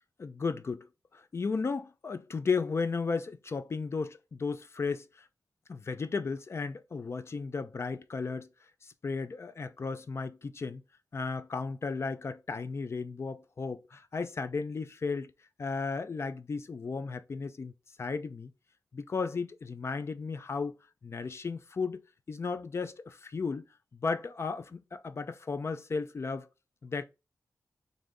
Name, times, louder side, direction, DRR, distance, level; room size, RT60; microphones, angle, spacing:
voice 1, 0.2-0.8 1.1-5.0 5.7-8.5 8.8-10.8 11.1-15.3 15.6-17.7 18.0-18.5 18.9-20.8 21.0-22.0 22.3-23.6 23.9-26.4 26.8-27.0, left 4 dB, 45° left, 0.4 m, -34 dB
3.4 x 2.6 x 3.7 m
wide cardioid pair, 140°, 6 cm